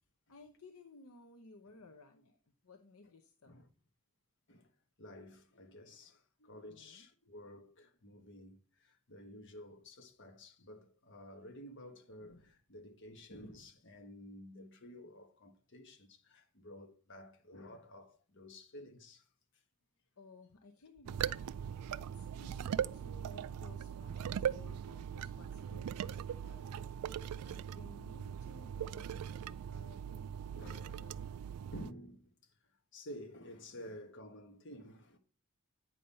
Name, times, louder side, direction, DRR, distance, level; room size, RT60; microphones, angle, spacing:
voice 1, 0.3-2.4 2.6-3.5 6.7-7.1 20.2-26.8 27.4-31.1 33.8-34.0, left 3 dB, 70° left, 0.8 m, -58 dB
voice 2, 5.0-19.3 21.7-21.8 24.4-24.6 30.5-30.9 31.7-32.5 32.9-35.2, left 1 dB, 55° left, 1.4 m, -52 dB
sound 1, 21.1-31.9, right 9 dB, 90° right, 0.3 m, -40 dB
9.1 x 5.5 x 4.3 m
head